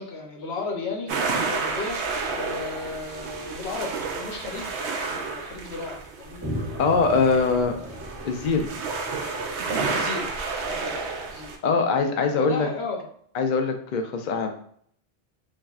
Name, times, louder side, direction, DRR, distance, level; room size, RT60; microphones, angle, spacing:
voice 1, 0.0-6.4 7.1-8.1 9.9-10.3 10.6-11.5 12.3-13.1, left 3 dB, 80° left, 1 dB, 1.1 m, -35 dB
sound 1, 1.1-11.6, right 4 dB, 80° right, 0.9 m, -31 dB
sound 2, 6.4-11.1, equal, 25° right, 1.2 m, -38 dB
voice 2, 6.8-7.8 8.2-8.7 11.6-12.7 13.3-14.5, left 4 dB, 55° left, 4 dB, 0.6 m, -22 dB
5.4 x 2.6 x 2.4 m, 0.63 s
omnidirectional pair, 1.1 m